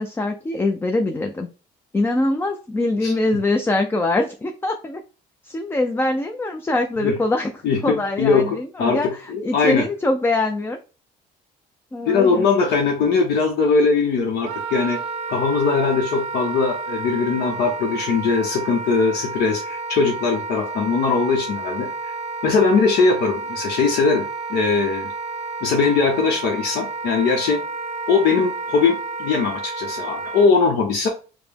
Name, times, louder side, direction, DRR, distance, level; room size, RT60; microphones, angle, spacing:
voice 1, 0.0-1.5 1.9-5.0 5.4-7.5 7.8-10.8 11.9-12.5, left 2 dB, 15° left, 4 dB, 0.4 m, -23 dB
voice 2, 7.6-8.5 8.8-9.0 9.3-9.8 12.1-15.0 15.3-22.1 22.4-25.1 25.6-27.6 28.1-31.1, left 4 dB, 75° left, 1 dB, 0.7 m, -20 dB
Wind instrument woodwind instrument, 14.4-30.5, right 3 dB, 40° right, 0.6 m, -31 dB
4.8 x 2.0 x 3.4 m, 0.35 s
cardioid pair, 110°, 17 cm